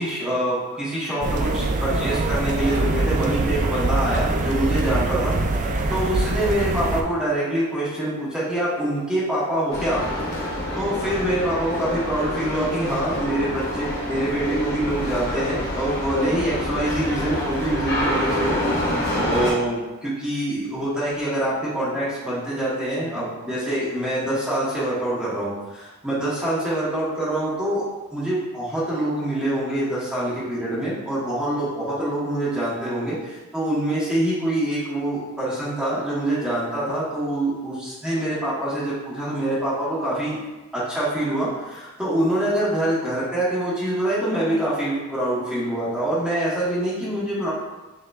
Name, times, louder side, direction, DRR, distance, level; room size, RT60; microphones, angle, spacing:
voice 1, 0.0-10.0 10.7-18.6 19.2-27.8 28.1-40.4 40.7-47.5, right 1 dB, 5° right, -10 dB, 1.1 m, -25 dB
sound 1, 1.2-7.0, right 2 dB, 35° right, 0.3 m, -23 dB
sound 2, 9.7-19.5, equal, 45° left, 1.1 m, -27 dB
6.4 x 2.9 x 2.3 m, 1.1 s
head